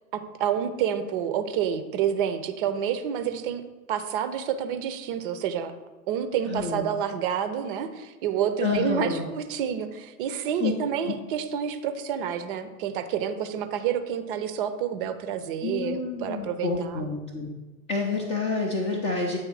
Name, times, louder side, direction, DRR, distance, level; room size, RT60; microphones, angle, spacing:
voice 1, 0.4-3.6 3.9-5.7 6.1-17.1, right 8 dB, 35° right, 9 dB, 0.6 m, -29 dB
voice 2, 6.5-6.9 8.6-9.3 10.6-10.7 11.0-11.1 15.6-17.5 17.9-19.4, left 4 dB, 15° left, 0 dB, 0.4 m, -28 dB
8.3 x 3.2 x 4.7 m, 1.2 s
figure-of-eight pair, 95°, 45 cm